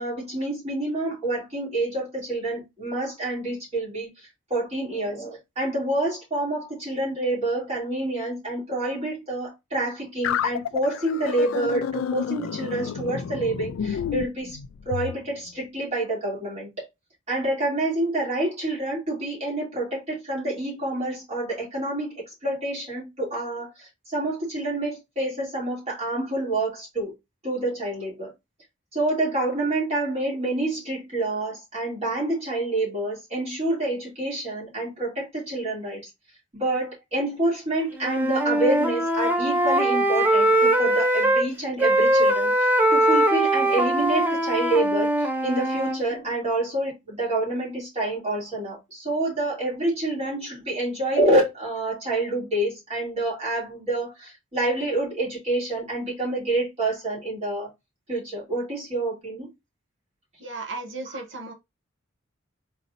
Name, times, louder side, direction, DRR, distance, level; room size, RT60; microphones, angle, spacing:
voice 1, 0.0-4.1 4.5-14.6 14.9-16.8 17.3-27.1 27.4-28.3 28.9-36.0 36.5-57.7 58.1-59.5 61.1-61.2, right 2 dB, 35° right, 2.6 m, -27 dB
sound 1, 10.2-15.2, left 8 dB, 75° left, 0.3 m, -30 dB
Wind instrument woodwind instrument, 38.0-41.5 41.8-46.0, right 1 dB, 10° right, 0.6 m, -21 dB
voice 2, 60.4-61.5, right 3 dB, 65° right, 1.0 m, -35 dB
4.1 x 3.9 x 2.6 m
head